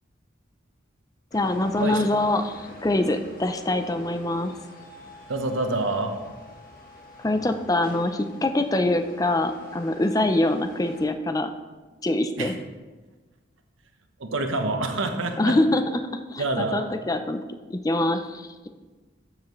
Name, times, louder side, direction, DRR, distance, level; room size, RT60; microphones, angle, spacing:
sound 1, 1.3-11.0, left 1 dB, 45° left, 1.4 m, -47 dB
voice 1, 1.3-4.5 7.2-11.5 12.0-12.5 15.4-15.8 16.3-17.4 17.7-18.7, left 1 dB, 20° left, 8 dB, 0.4 m, -24 dB
voice 2, 5.3-6.1 12.4-12.5 14.2-15.5 16.4-16.9, right 2 dB, 85° right, 5 dB, 1.0 m, -26 dB
12.0 x 7.4 x 3.1 m, 1.3 s
head